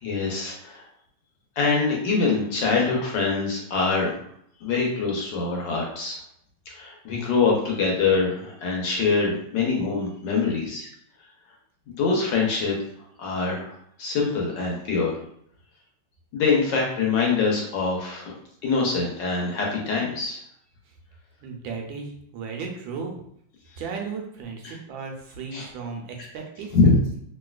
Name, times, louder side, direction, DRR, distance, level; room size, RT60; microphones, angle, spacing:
voice 1, 0.0-0.8 1.6-4.2 4.6-6.2 6.7-10.9 11.9-12.8 13.2-13.7 14.0-15.2 16.3-18.3 18.6-20.4 24.6-24.8 25.5-25.7 26.2-26.3 26.7-27.0, left 4 dB, 70° left, -1 dB, 1.3 m, -24 dB
voice 2, 21.4-23.2 23.8-26.7, right 5 dB, 75° right, 2 dB, 1.3 m, -35 dB
3.1 x 2.8 x 2.3 m, 0.67 s
omnidirectional pair, 2.2 m